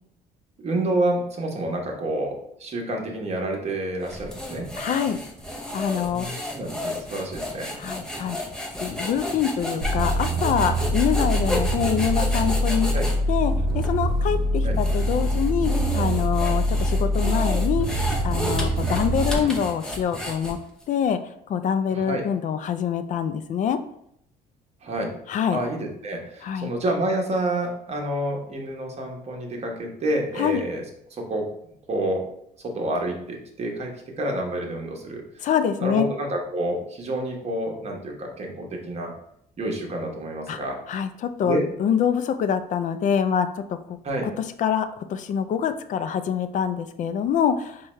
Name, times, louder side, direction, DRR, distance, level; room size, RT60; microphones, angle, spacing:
voice 1, 0.6-4.7 6.1-7.7 12.9-13.1 14.6-14.8 21.9-22.2 24.8-25.1 25.5-30.8 31.1-31.5 31.9-32.2 32.6-35.5 35.8-39.1 39.6-40.8 41.4-41.7 44.0-44.3, right 1 dB, 40° right, 1 dB, 1.0 m, -28 dB
sound 1, 4.0-13.2 13.8-13.9 14.6-20.8, left 1 dB, 5° left, 0.6 m, -32 dB
voice 2, 4.8-5.2 5.7-6.3 7.8-8.4 8.8-13.0 13.3-17.9 18.2-20.6 20.9-21.2 21.5-23.8 25.3-25.6 26.4-26.7 30.4-30.6 35.4-36.1 40.5-40.6 40.9-43.8 44.6-47.8, left 8 dB, 50° left, 10 dB, 0.4 m, -25 dB
sound 2, 9.8-19.4, equal, 85° right, 0.6 m, -24 dB
4.7 x 2.3 x 3.1 m, 0.73 s
cardioid pair, 110°, 17 cm